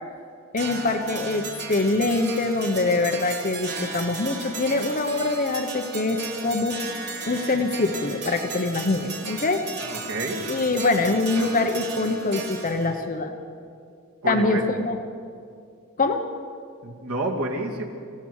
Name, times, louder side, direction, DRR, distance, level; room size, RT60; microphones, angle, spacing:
voice 1, 0.5-6.8 7.3-9.6 10.5-13.3 14.3-15.0 16.0-16.3, left 2 dB, 40° left, 6 dB, 1.0 m, -24 dB
sound 1, 0.6-13.0, right 3 dB, 55° right, 2.7 m, -35 dB
voice 2, 9.9-10.4 14.2-14.6 16.8-17.9, right 2 dB, 90° right, 0 dB, 2.7 m, -28 dB
25.0 x 16.0 x 6.5 m, 2.3 s
head